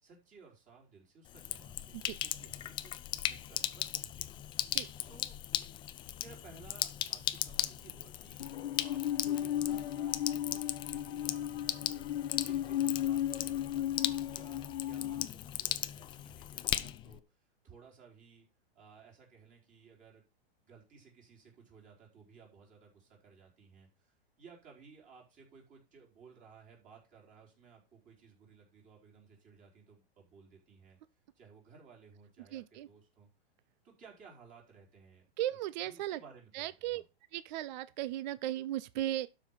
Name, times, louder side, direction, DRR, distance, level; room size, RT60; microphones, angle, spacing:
voice 1, 0.0-4.3 5.1-5.4 6.2-8.5 8.8-18.5 18.7-20.2 20.6-31.0 31.3-33.3 33.8-37.0, right 5 dB, 25° right, 4.4 m, -58 dB
Sink (filling or washing), 1.3-17.2, left 12 dB, 15° left, 0.5 m, -38 dB
Musical instrument, 8.4-15.2, left 11 dB, 80° left, 0.6 m, -35 dB
voice 2, 32.5-32.9 35.4-36.2 36.5-37.0 37.3-39.3, right 13 dB, 45° right, 0.6 m, -36 dB
12.0 x 5.2 x 5.8 m
hypercardioid pair, 140°, 31 cm